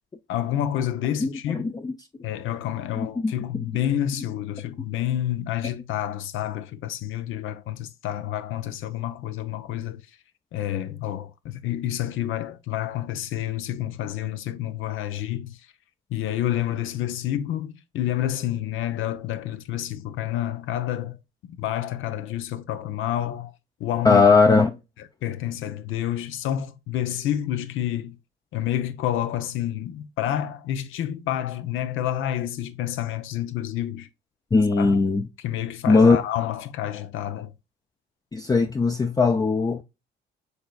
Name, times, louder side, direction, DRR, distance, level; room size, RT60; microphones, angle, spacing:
voice 1, 0.3-1.7 2.2-10.0 10.5-15.6 16.1-21.2 21.5-23.5 23.8-24.2 25.2-28.2 28.5-34.1 34.8-35.0 35.4-37.5, left 11 dB, 85° left, 0.7 m, -29 dB
voice 2, 1.2-1.9 3.0-3.6 24.0-24.8 34.5-35.3 35.9-36.2 38.3-39.8, left 4 dB, 20° left, 0.5 m, -19 dB
6.4 x 3.3 x 2.3 m
cardioid pair, 90°, 20 cm